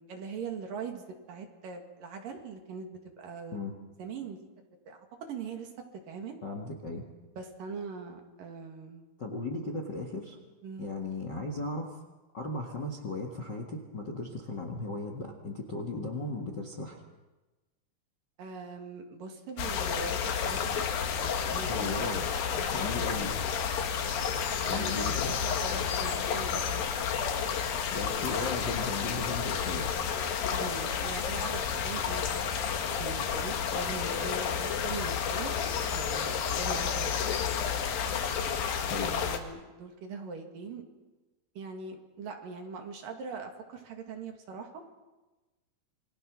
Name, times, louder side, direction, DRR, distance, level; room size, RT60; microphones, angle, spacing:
voice 1, 0.0-3.6 4.0-4.4 4.9-5.7 6.1-6.4 7.4-9.1 10.6-10.9 18.4-20.9 21.2-22.2 22.5-23.3 24.6-25.1 25.4-26.9 30.5-32.6 32.9-35.6 35.9-37.3 39.0-40.8 41.6-44.8, right 4 dB, 60° right, 3 dB, 3.6 m, -41 dB
voice 2, 6.4-7.0 9.2-10.4 10.8-12.0 12.3-17.0 21.7-22.2 22.7-23.3 24.6-25.4 27.9-29.9 38.8-39.1, left 2 dB, 40° left, 3 dB, 1.6 m, -36 dB
sound 1, 19.6-39.4, left 7 dB, 65° left, 3.3 m, -31 dB
27.5 x 22.5 x 6.2 m, 1.2 s
omnidirectional pair, 4.6 m